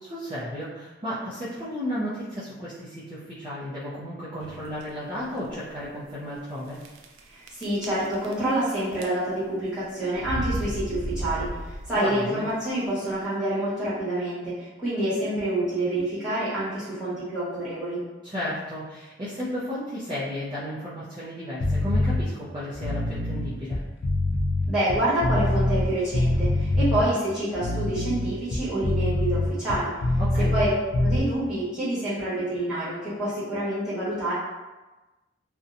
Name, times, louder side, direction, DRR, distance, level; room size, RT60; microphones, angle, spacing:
voice 1, 0.0-6.8 11.9-12.4 18.2-23.8 30.2-30.5, equal, 25° right, -11 dB, 0.5 m, -33 dB
sound 1, 4.4-4.8 5.5-5.6 5.8-5.9 6.8-7.2 7.5-8.6 8.9-9.5 10.1-12.1, right 1 dB, 85° right, 0.4 m, -33 dB
voice 2, 7.3-18.0 24.7-29.9 30.4-34.3, right 1 dB, 5° right, -13 dB, 1.2 m, -27 dB
sound 2, 21.6-22.2 22.7-25.9 26.1-27.0 27.5-30.7 30.9-31.2, left 1 dB, 70° left, 0.4 m, -24 dB
2.7 x 2.2 x 2.5 m, 1.1 s
head